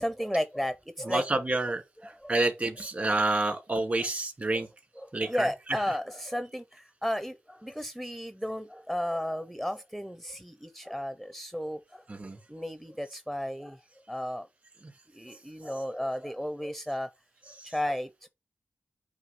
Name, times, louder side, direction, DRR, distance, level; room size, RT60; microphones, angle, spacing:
voice 1, 0.0-1.2 2.0-2.4 4.5-4.7 5.0-12.0 12.5-13.8 14.1-14.5 15.1-17.1 17.6-18.3, equal, ahead, 0.7 m, -34 dB
voice 2, 1.1-4.7 5.1-5.8 12.1-12.4 17.6-17.7, right 2 dB, 40° right, 2.5 m, -29 dB
9.2 x 3.2 x 5.9 m
wide cardioid pair, 80°, 4 cm